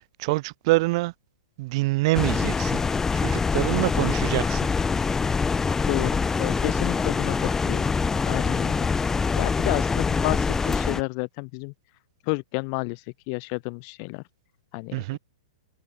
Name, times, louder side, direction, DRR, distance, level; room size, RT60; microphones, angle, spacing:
voice 1, 0.2-1.1 1.6-2.8 3.1-4.7 14.9-15.2, right 22 dB, 50° right, 3.0 m, -25 dB
sound 1, 2.1-11.0, left 5 dB, 10° left, 1.5 m, -24 dB
voice 2, 5.9-7.8 8.2-9.1 9.4-11.7 12.2-14.2 14.7-15.2, left 39 dB, 45° left, 2.4 m, -31 dB
hypercardioid pair, 125°, 4 cm